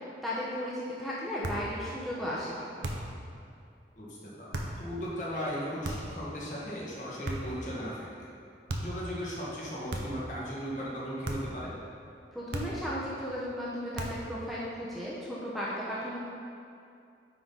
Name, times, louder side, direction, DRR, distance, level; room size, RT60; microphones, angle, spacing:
voice 1, 0.2-2.7 12.3-16.2, equal, ahead, -8 dB, 0.7 m, -35 dB
sound 1, 1.4-1.7 2.8-3.2 4.5-4.8 5.8-6.2 7.2-7.6 8.7-9.0 9.9-10.3 11.2-11.6 12.5-12.9 13.9-14.3, right 1 dB, 85° right, 0.8 m, -36 dB
voice 2, 4.0-8.3 8.8-11.7, equal, 45° left, -6 dB, 1.4 m, -37 dB
9.4 x 4.0 x 3.9 m, 2.5 s
head